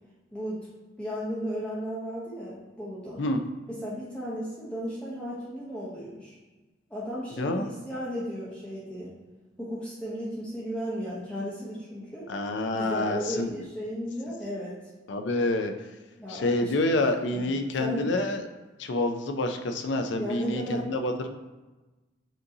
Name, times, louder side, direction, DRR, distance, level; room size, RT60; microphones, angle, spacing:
voice 1, 0.3-0.7 1.0-3.2 3.8-6.4 6.9-9.1 9.6-12.2 12.7-14.7 16.2-16.7 17.1-18.0 20.2-20.8, equal, 5° left, -9 dB, 0.6 m, -35 dB
voice 2, 7.4-7.7 12.3-13.5 15.1-15.7 16.3-18.4 18.8-21.3, left 2 dB, 70° left, 6 dB, 0.4 m, -27 dB
6.2 x 2.7 x 2.7 m, 1.2 s
head